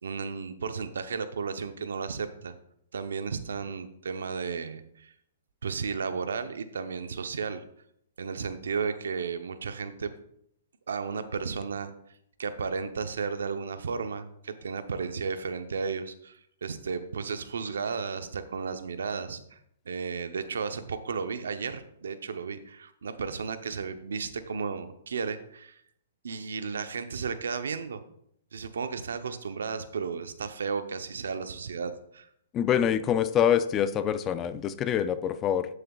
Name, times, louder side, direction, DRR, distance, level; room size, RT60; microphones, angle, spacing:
voice 1, 0.0-2.5 2.9-5.1 5.6-7.6 8.2-10.1 10.9-11.9 12.4-19.6 19.9-25.8 26.2-28.0 28.5-32.3, right 5 dB, 85° right, 10 dB, 0.7 m, -34 dB
voice 2, 32.5-35.7, left 9 dB, 20° left, 13 dB, 0.4 m, -25 dB
11.0 x 6.7 x 2.4 m, 0.72 s
hypercardioid pair, 150°, 0 cm